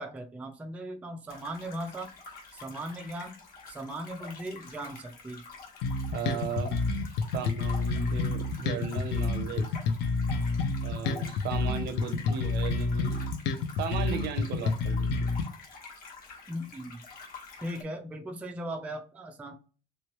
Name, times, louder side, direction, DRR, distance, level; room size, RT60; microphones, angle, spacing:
voice 1, 0.0-2.1 2.5-3.3 3.7-5.4 16.5-17.1 17.6-19.5, right 1 dB, 5° right, 0.3 m, -38 dB
sound 1, 1.3-17.8, left 4 dB, 50° left, 1.2 m, -47 dB
sound 2, 5.8-15.4, left 4 dB, 65° left, 0.5 m, -29 dB
voice 2, 6.1-6.7 7.3-9.7 10.8-13.3 13.8-15.1, right 6 dB, 60° right, 0.6 m, -35 dB
3.3 x 3.1 x 2.9 m
cardioid pair, 170°, 19 cm